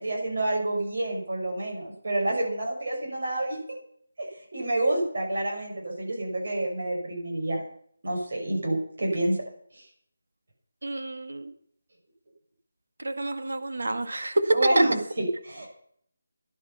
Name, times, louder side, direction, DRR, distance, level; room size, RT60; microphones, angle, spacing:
voice 1, 0.0-3.6 4.2-7.6 8.0-9.4 9.7-9.8 14.5-15.7, right 1 dB, 50° right, 0 dB, 6.5 m, -28 dB
voice 2, 10.8-11.5 13.0-14.8, right 2 dB, 70° right, 7 dB, 1.9 m, -27 dB
15.0 x 11.0 x 5.8 m, 0.64 s
figure-of-eight pair, 180°, 0 cm